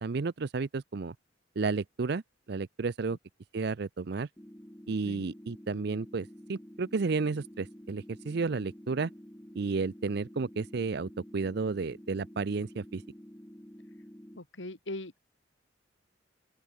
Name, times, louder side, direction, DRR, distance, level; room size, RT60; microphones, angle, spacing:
voice 1, 0.0-1.1 1.6-2.2 2.5-3.2 3.5-4.3 4.9-9.1 9.6-13.0, right 4 dB, 60° right, 0.5 m, -32 dB
sound 1, 4.4-14.4, equal, 10° left, 2.9 m, -50 dB
voice 2, 14.4-15.2, left 1 dB, 85° left, 3.0 m, -40 dB
open air
head